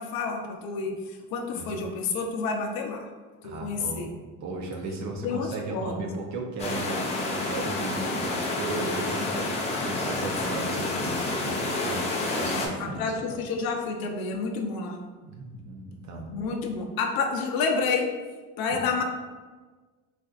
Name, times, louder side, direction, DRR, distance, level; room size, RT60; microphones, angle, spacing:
voice 1, 0.0-3.1 3.4-4.1 5.2-6.1 12.8-15.0 16.3-18.1 18.6-19.0, left 4 dB, 80° left, 3 dB, 0.6 m, -29 dB
voice 2, 3.4-4.1 4.4-12.1 12.3-13.1 15.2-16.3 18.7-18.8, right 2 dB, 55° right, 0 dB, 0.6 m, -35 dB
sound 1, 6.6-12.7, left 2 dB, 20° left, 0.3 m, -29 dB
4.1 x 2.5 x 2.4 m, 1.3 s
cardioid pair, 170°, 35 cm